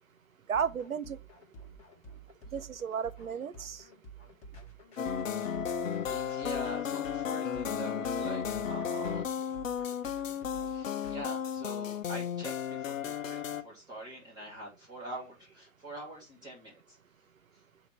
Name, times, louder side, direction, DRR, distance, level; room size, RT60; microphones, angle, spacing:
sound 1, 0.5-11.2, right 3 dB, 15° left, 1.9 m, -50 dB
voice 1, 0.5-1.2 2.5-3.8, right 7 dB, 90° right, 0.6 m, -33 dB
sound 2, 5.0-13.6, left 8 dB, 70° left, 0.8 m, -34 dB
voice 2, 6.1-9.3 10.6-17.0, right 1 dB, 10° right, 2.3 m, -44 dB
6.6 x 2.9 x 5.4 m
figure-of-eight pair, 125°, 40 cm